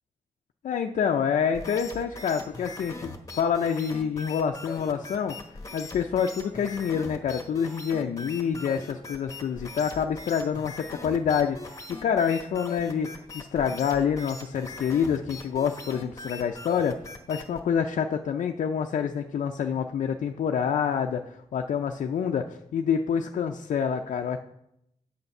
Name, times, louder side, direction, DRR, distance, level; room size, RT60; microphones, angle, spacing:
voice 1, 0.6-5.4 5.7-17.0 17.3-24.4, left 7 dB, 85° left, 3 dB, 0.5 m, -27 dB
sound 1, 1.5-17.6, left 3 dB, 25° left, 1.1 m, -41 dB
8.0 x 6.6 x 5.4 m, 0.80 s
wide cardioid pair, 95°, 13 cm